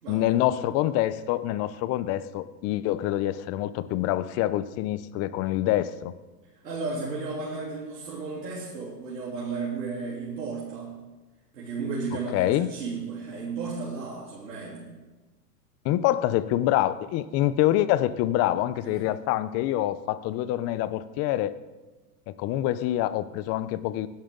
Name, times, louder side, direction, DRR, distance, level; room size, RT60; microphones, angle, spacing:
voice 1, 0.1-6.1 12.3-12.7 15.8-21.5 22.3-24.1, left 14 dB, 30° left, 15 dB, 0.6 m, -26 dB
voice 2, 6.6-11.0 11.5-14.9 18.8-19.0, right 4 dB, 90° right, -6 dB, 3.5 m, -34 dB
19.5 x 11.0 x 3.9 m, 1.2 s
hypercardioid pair, 120°, 48 cm